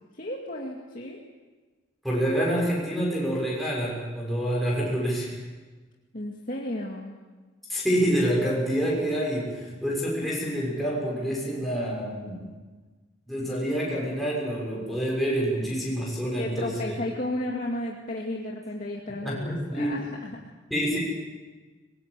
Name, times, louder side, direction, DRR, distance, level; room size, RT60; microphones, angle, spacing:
voice 1, 0.2-1.2 6.1-7.2 16.2-20.5, left 1 dB, 45° left, -1 dB, 2.3 m, -33 dB
voice 2, 2.0-5.4 7.7-12.5 13.3-16.9 19.2-20.0 20.7-21.0, equal, ahead, -6 dB, 6.8 m, -27 dB
24.0 x 21.0 x 8.4 m, 1.3 s
head